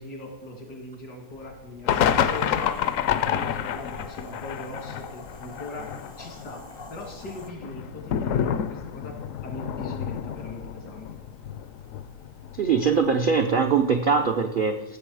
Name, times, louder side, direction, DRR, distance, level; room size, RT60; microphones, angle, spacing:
voice 1, 0.0-2.8 3.1-5.9 6.2-6.6 6.9-9.2 9.4-11.1, left 2 dB, 90° left, 2 dB, 2.9 m, -40 dB
sound 1, 1.5-1.6 1.9-13.4 13.6-13.7 14.1-14.3, left 9 dB, 70° left, 0.8 m, -29 dB
sound 2, 1.9-7.5, left 2 dB, 40° left, 0.4 m, -43 dB
voice 2, 12.5-15.0, right 5 dB, 75° right, 6 dB, 0.4 m, -22 dB
15.0 x 6.9 x 4.8 m, 1.1 s
omnidirectional pair, 1.7 m